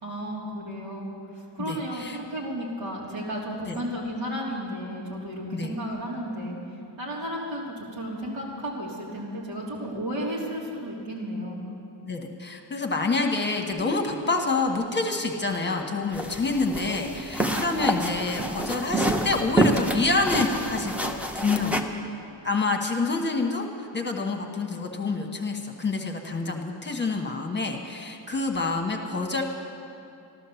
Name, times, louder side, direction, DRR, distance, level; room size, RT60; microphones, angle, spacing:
voice 1, 0.0-6.6 7.0-11.6, equal, 85° right, -4 dB, 3.6 m, -33 dB
voice 2, 1.6-2.2 3.7-3.8 5.5-5.7 12.1-21.9 22.4-29.4, left 3 dB, 25° left, 2 dB, 1.2 m, -27 dB
sound 1, 16.1-21.8, right 1 dB, 5° right, 0.7 m, -27 dB
14.5 x 12.5 x 7.0 m, 2.8 s
wide cardioid pair, 170°, 44 cm